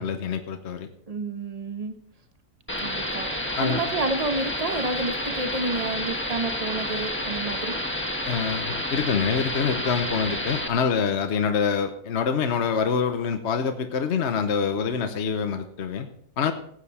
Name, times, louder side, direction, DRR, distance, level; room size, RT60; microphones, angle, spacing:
voice 1, 0.0-0.9 3.6-3.8 8.3-16.1 16.4-16.5, left 6 dB, 50° left, 7 dB, 1.1 m, -25 dB
voice 2, 1.1-1.9 2.8-7.8, right 2 dB, 30° right, 8 dB, 1.0 m, -30 dB
sound 1, 2.7-10.7, left 1 dB, 10° left, 1.3 m, -30 dB
16.0 x 9.1 x 4.2 m, 0.66 s
omnidirectional pair, 1.6 m